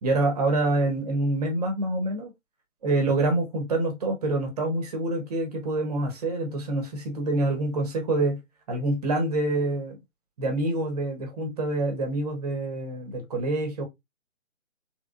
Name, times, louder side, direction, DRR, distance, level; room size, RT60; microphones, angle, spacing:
voice 1, 0.0-2.3 2.8-8.4 8.7-10.0 10.4-13.8, right 2 dB, 30° right, 1.1 m, -26 dB
3.6 x 3.3 x 2.4 m
figure-of-eight pair, 145°, 39 cm